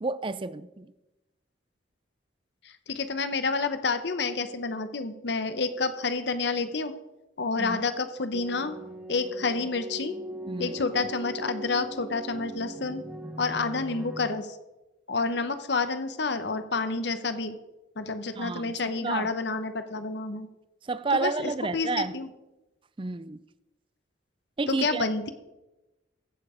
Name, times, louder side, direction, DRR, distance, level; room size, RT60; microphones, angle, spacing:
voice 1, 0.0-0.9 7.6-7.8 10.5-10.8 18.4-19.3 20.9-22.1 23.0-23.4 24.6-25.1, right 3 dB, 25° right, 0.4 m, -30 dB
voice 2, 2.6-6.9 7.4-8.7 9.1-10.1 10.6-13.0 13.4-14.5 15.1-17.5 18.0-20.5 21.1-22.3 24.7-25.3, left 4 dB, 60° left, 0.8 m, -29 dB
sound 1, 8.3-14.3, right 1 dB, 5° right, 1.4 m, -40 dB
15.0 x 7.0 x 5.0 m
head